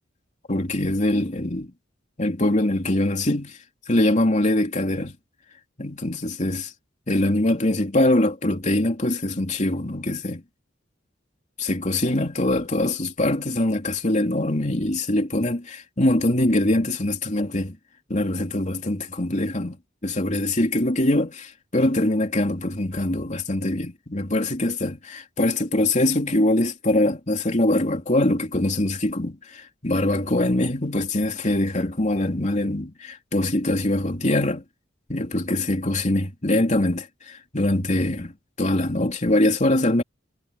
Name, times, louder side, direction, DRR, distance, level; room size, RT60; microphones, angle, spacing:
voice 1, 0.5-1.7 2.2-3.6 3.9-5.2 5.8-6.7 7.1-10.4 11.6-17.8 18.1-19.8 20.0-34.6 35.1-40.0, left 1 dB, 40° left, 3.1 m, -23 dB
head